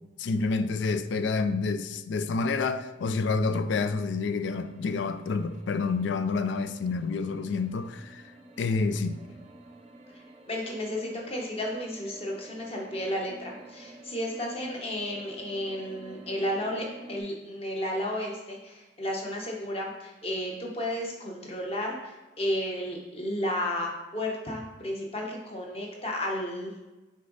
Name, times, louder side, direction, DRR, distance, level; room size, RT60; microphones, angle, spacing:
voice 1, 0.2-8.3 8.6-9.2, left 4 dB, 65° left, 0.4 m, -28 dB
sound 1, 2.8-17.2, right 2 dB, 30° right, 0.6 m, -50 dB
voice 2, 10.5-26.7, left 1 dB, 30° left, 1.0 m, -33 dB
6.5 x 3.9 x 4.0 m
head